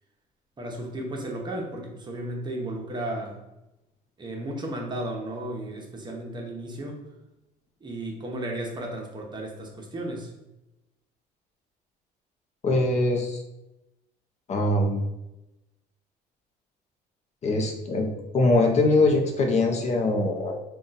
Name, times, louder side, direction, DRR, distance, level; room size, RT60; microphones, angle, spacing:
voice 1, 0.6-3.4 4.2-7.0 7.8-10.3, right 1 dB, 25° right, 0 dB, 0.9 m, -34 dB
voice 2, 12.6-13.4 14.5-15.0 17.4-18.1 18.3-20.6, left 2 dB, 40° left, 2 dB, 0.6 m, -22 dB
3.7 x 2.3 x 4.0 m, 0.95 s
cardioid pair, 110°, 17 cm